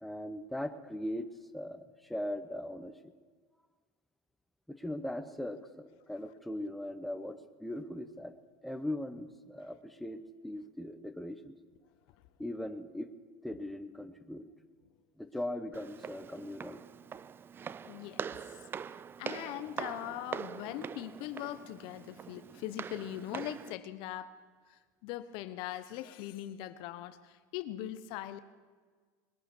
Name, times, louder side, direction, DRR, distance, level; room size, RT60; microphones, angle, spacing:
voice 1, 0.0-3.0 4.7-8.3 8.6-11.6 12.4-13.1 13.4-14.5 15.2-16.8, left 1 dB, ahead, 8 dB, 0.9 m, -39 dB
Walk footsteps, 15.7-23.7, right 7 dB, 25° right, 0.3 m, -43 dB
voice 2, 17.8-18.2 18.9-24.3 24.7-28.4, left 13 dB, 65° left, 13 dB, 0.9 m, -41 dB
21.0 x 10.0 x 6.1 m, 1.5 s
supercardioid pair, 120°, 9 cm